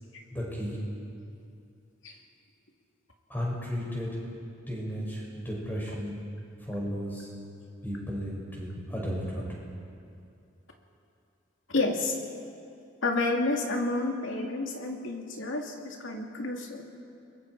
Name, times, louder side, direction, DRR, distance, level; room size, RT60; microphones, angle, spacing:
voice 1, 0.3-0.8 3.3-4.2 4.7-6.2 6.6-7.3 7.8-9.4, equal, 10° left, -4 dB, 6.1 m, -34 dB
voice 2, 11.7-12.2 13.0-16.9, left 2 dB, 85° left, 1 dB, 2.5 m, -30 dB
29.5 x 22.0 x 4.8 m, 2.5 s
head